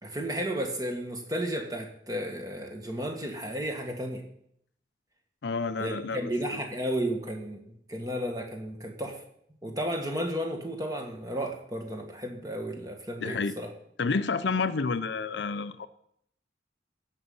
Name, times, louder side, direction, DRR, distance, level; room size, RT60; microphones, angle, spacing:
voice 1, 0.0-4.2 5.8-7.6 7.9-9.2 9.6-13.7, equal, 20° right, 3 dB, 1.7 m, -33 dB
voice 2, 5.4-6.6 13.2-13.6 14.0-15.9, left 4 dB, 70° left, 13 dB, 0.5 m, -30 dB
15.5 x 6.4 x 5.5 m, 0.71 s
head